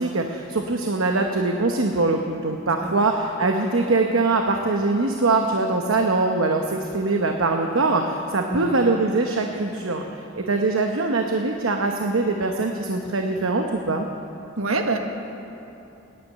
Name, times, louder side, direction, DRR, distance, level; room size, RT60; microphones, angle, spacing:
voice 1, 0.0-10.0 10.4-14.1, right 3 dB, 70° right, 3 dB, 0.9 m, -22 dB
voice 2, 2.8-3.1 8.4-9.0 14.6-15.0, right 3 dB, 90° right, 4 dB, 1.4 m, -27 dB
14.5 x 10.5 x 9.0 m, 2.8 s
head